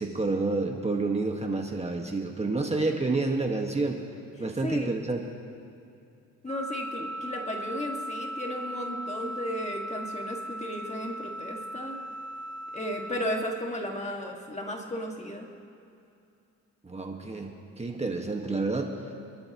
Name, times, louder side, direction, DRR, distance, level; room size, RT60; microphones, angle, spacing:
voice 1, 0.0-4.0 4.4-5.2 16.8-18.9, right 3 dB, 20° right, 2 dB, 1.6 m, -29 dB
voice 2, 4.4-4.9 6.4-12.0 12.7-15.5, equal, 20° left, 1 dB, 2.0 m, -35 dB
Wind instrument woodwind instrument, 6.5-13.4, right 1 dB, 50° right, 1.9 m, -37 dB
29.0 x 12.0 x 3.0 m, 2.6 s
cardioid pair, 90°, 30 cm